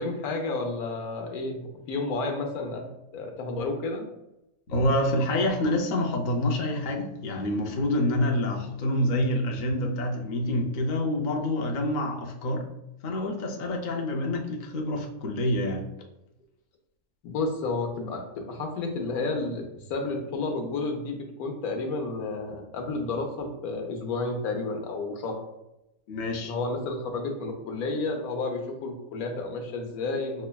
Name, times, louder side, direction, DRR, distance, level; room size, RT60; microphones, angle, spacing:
voice 1, 0.0-4.0 17.2-25.4 26.5-30.5, left 3 dB, 85° left, 3 dB, 1.2 m, -31 dB
voice 2, 4.7-12.7 13.0-15.9 26.1-26.5, left 1 dB, 60° left, 2 dB, 0.5 m, -27 dB
6.1 x 2.2 x 2.2 m, 0.88 s
omnidirectional pair, 1.5 m